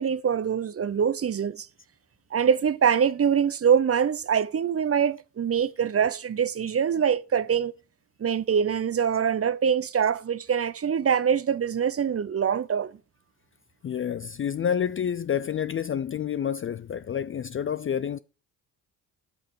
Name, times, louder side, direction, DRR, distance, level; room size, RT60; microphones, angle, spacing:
voice 1, 0.0-1.7 2.3-7.7 8.2-12.9, right 7 dB, 30° right, 0.7 m, -24 dB
voice 2, 13.8-18.2, left 8 dB, 30° left, 0.4 m, -28 dB
11.0 x 5.7 x 6.5 m
hypercardioid pair, 45°, 46 cm